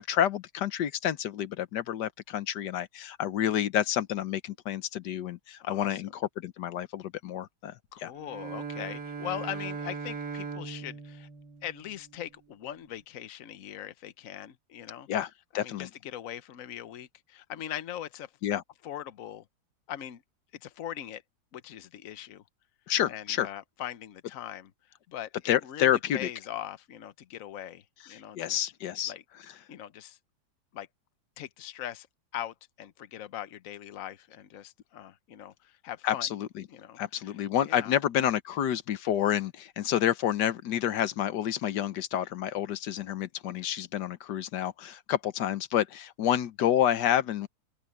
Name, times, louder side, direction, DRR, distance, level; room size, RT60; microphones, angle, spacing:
voice 1, 0.0-8.1 15.1-15.9 18.4-18.6 22.9-23.5 25.4-26.3 28.1-29.1 36.0-36.6 37.0-47.5, left 11 dB, 90° left, 1.5 m, -29 dB
voice 2, 5.6-6.0 7.9-11.3 11.6-15.1 15.5-18.3 18.8-19.4 19.9-20.2 20.6-21.2 21.5-22.4 23.1-24.7 25.1-28.7 29.1-29.2 29.7-30.2 30.7-30.9 31.4-32.1 32.3-36.3 36.7-37.4 37.7-38.0, left 11 dB, 55° left, 1.2 m, -41 dB
Bowed string instrument, 8.1-12.3, right 5 dB, 85° right, 2.3 m, -39 dB
open air
omnidirectional pair, 1.8 m